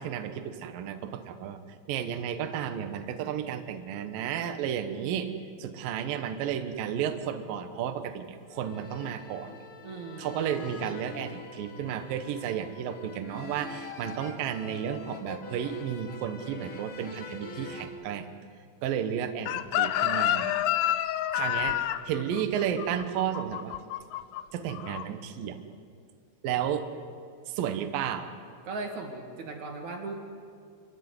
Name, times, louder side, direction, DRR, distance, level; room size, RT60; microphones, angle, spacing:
voice 1, 0.0-1.6 1.9-5.3 5.6-9.5 10.2-18.3 18.8-20.7 21.3-21.8 22.1-23.7 24.5-25.6 26.4-26.9 27.5-28.3, right 9 dB, 70° right, 7 dB, 2.3 m, -32 dB
sound 1, 8.4-17.9, left 3 dB, 65° left, 1.2 m, -44 dB
voice 2, 9.8-10.6 28.6-30.1, right 3 dB, 45° right, 3 dB, 2.8 m, -38 dB
Chicken rooster, 19.5-24.4 24.7-25.0, left 12 dB, 85° left, 2.4 m, -28 dB
26.5 x 15.0 x 9.6 m, 2.2 s
omnidirectional pair, 5.6 m